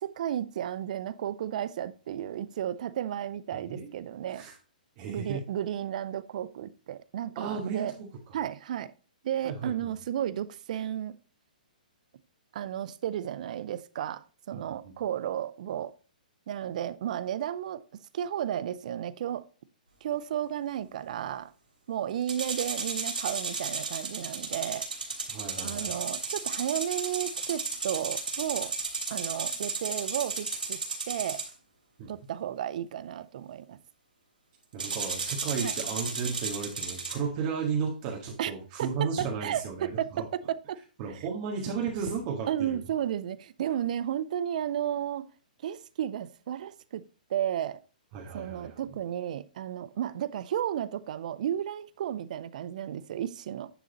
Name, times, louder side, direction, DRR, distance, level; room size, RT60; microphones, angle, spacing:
voice 1, 0.0-4.5 5.1-7.9 8.3-8.9 9.2-11.1 12.5-15.9 16.5-19.4 20.0-21.5 21.9-24.8 25.6-28.7 29.1-31.4 32.1-33.8 35.6-35.7 38.4-38.5 38.8-40.8 42.5-45.3 45.6-47.0 47.3-47.8 48.3-53.7, right 10 dB, 55° right, 0.6 m, -33 dB
voice 2, 3.5-3.9 4.3-4.5 5.0-5.4 7.4-7.9 9.4-9.7 14.5-14.7 25.3-26.0 32.0-32.1 34.7-40.2 41.0-42.8 48.1-48.9, right 6 dB, 40° right, 1.8 m, -34 dB
sound 1, 22.3-31.5 34.8-37.1, right 4 dB, 90° right, 3.1 m, -34 dB
10.0 x 3.8 x 4.1 m
hypercardioid pair, 135°, 5 cm